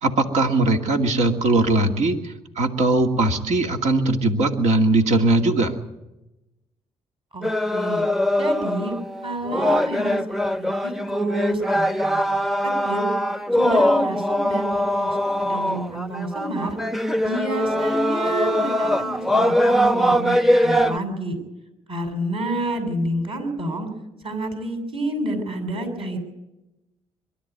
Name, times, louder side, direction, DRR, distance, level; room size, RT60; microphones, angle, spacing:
voice 1, 0.0-5.7, right 2 dB, 70° right, 4 dB, 2.4 m, -20 dB
voice 2, 7.3-8.0 8.4-8.9 9.2-10.2 10.6-12.2 12.6-13.1 13.5-16.8 17.2-21.4 21.9-23.9 24.2-26.2, right 1 dB, 50° right, 6 dB, 7.1 m, -29 dB
sound 1, 7.4-21.0, equal, ahead, 0.7 m, -22 dB
23.0 x 12.5 x 9.3 m, 0.97 s
cardioid pair, 70°, 12 cm